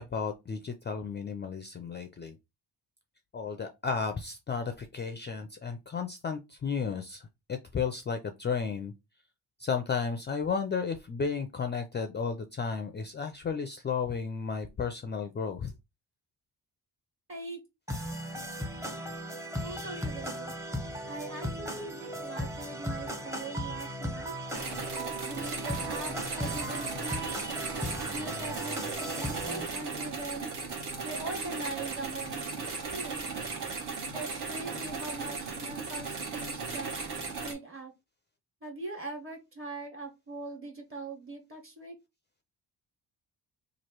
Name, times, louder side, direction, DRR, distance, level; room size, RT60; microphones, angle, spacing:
voice 1, 0.0-2.4 3.3-8.9 9.6-15.7, left 5 dB, 25° left, 7 dB, 0.4 m, -33 dB
voice 2, 17.3-17.6 19.6-20.5 21.1-24.3 25.2-27.5 28.1-30.5 31.0-33.3 34.1-36.9 37.4-37.9 38.6-41.9, right 2 dB, 30° right, 2 dB, 1.4 m, -41 dB
sound 1, 17.9-29.7, equal, 5° right, 0.7 m, -37 dB
sound 2, 24.5-37.5, right 4 dB, 65° right, 1.4 m, -37 dB
3.0 x 2.5 x 4.4 m, 0.23 s
wide cardioid pair, 125°, 42 cm